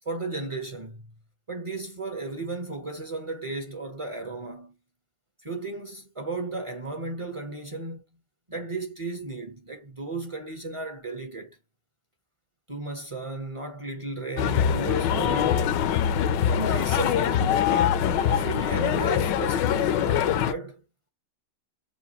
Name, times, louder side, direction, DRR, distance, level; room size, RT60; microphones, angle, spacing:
voice 1, 0.0-1.1 1.5-4.8 5.4-8.0 8.5-11.6 12.7-15.7 16.5-17.6 18.2-20.8, right 3 dB, 40° right, 0.4 m, -34 dB
sound 1, 14.4-20.5, left 9 dB, 70° left, 1.1 m, -23 dB
7.0 x 2.6 x 2.9 m
omnidirectional pair, 2.3 m